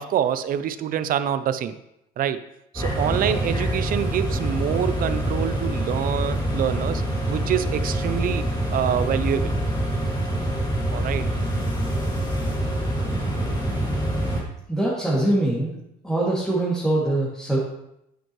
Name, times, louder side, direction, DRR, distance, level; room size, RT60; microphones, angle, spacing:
voice 1, 0.0-1.7 2.2-2.4 2.7-7.0 7.3-9.5 10.9-11.3, right 9 dB, 55° right, 12 dB, 0.6 m, -26 dB
sound 1, 2.7-14.4, right 1 dB, 25° left, 2.5 m, -25 dB
voice 2, 14.7-15.7 16.0-17.6, right 1 dB, 5° left, -8 dB, 2.5 m, -23 dB
9.2 x 9.0 x 3.2 m, 0.81 s
cardioid pair, 110°, 17 cm